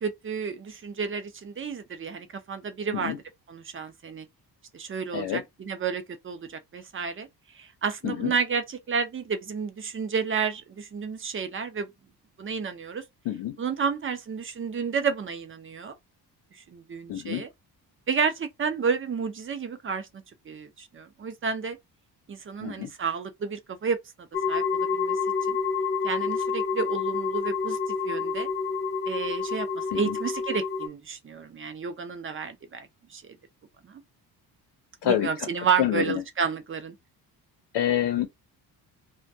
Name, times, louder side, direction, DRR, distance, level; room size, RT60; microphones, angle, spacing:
voice 1, 0.0-3.2 3.5-4.3 4.7-7.3 7.6-11.9 12.4-13.0 13.6-15.9 16.7-17.5 18.1-20.1 20.5-21.8 22.3-25.2 25.5-25.6 26.0-27.8 28.0-28.5 29.1-32.9 33.1-33.2 33.8-34.0 35.0-36.9, right 6 dB, 30° right, 0.5 m, -31 dB
voice 2, 13.3-13.6 17.1-17.4 22.6-22.9 29.9-30.2 35.0-35.3 35.8-36.2 37.7-38.3, left 11 dB, 85° left, 0.7 m, -27 dB
sound 1, 24.3-30.9, left 5 dB, 25° left, 0.6 m, -28 dB
2.2 x 2.2 x 2.6 m
cardioid pair, 125°, 41 cm